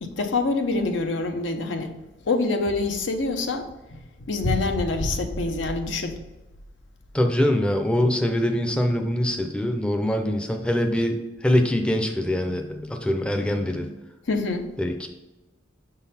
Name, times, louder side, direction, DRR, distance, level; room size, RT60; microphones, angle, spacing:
voice 1, 0.0-1.9 2.2-6.2 14.3-14.7, left 3 dB, 75° left, 5 dB, 0.7 m, -26 dB
voice 2, 7.1-13.9 14.8-15.1, left 1 dB, 5° left, 4 dB, 0.5 m, -23 dB
6.4 x 3.9 x 4.1 m, 1.1 s
head